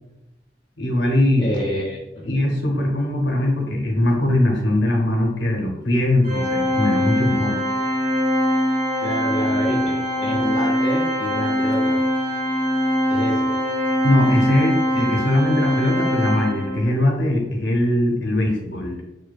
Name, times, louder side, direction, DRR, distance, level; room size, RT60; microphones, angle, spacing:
voice 1, 0.8-1.5 2.3-7.6 14.0-19.0, left 1 dB, 70° left, 0 dB, 0.6 m, -20 dB
voice 2, 1.4-2.3 9.0-12.0 13.1-13.4, equal, 25° left, -3 dB, 0.4 m, -28 dB
Organ, 6.2-17.0, equal, 55° right, 1.0 m, -22 dB
2.6 x 2.2 x 2.2 m, 0.97 s
head